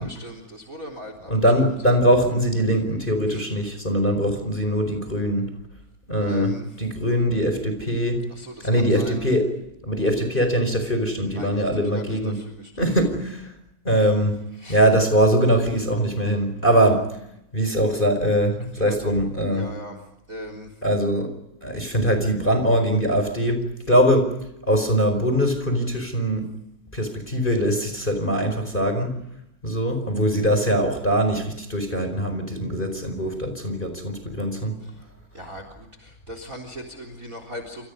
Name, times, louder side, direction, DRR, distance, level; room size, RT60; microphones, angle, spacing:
voice 1, 0.0-1.3 3.3-3.5 6.2-6.7 8.3-9.2 11.2-12.7 14.6-14.8 18.6-19.1 19.5-20.0 20.3-20.8 21.7-21.8 34.8-35.0 35.3-37.9, equal, 20° right, 7 dB, 3.8 m, -39 dB
voice 2, 1.3-5.5 6.1-8.2 8.6-9.5 9.8-12.4 12.8-13.5 13.8-14.4 14.7-17.1 17.5-19.7 20.8-21.3 21.6-24.3 24.7-26.5 26.9-29.2 29.6-34.7, equal, 15° left, 7 dB, 4.6 m, -22 dB
28.5 x 28.0 x 5.3 m, 0.81 s
omnidirectional pair, 4.2 m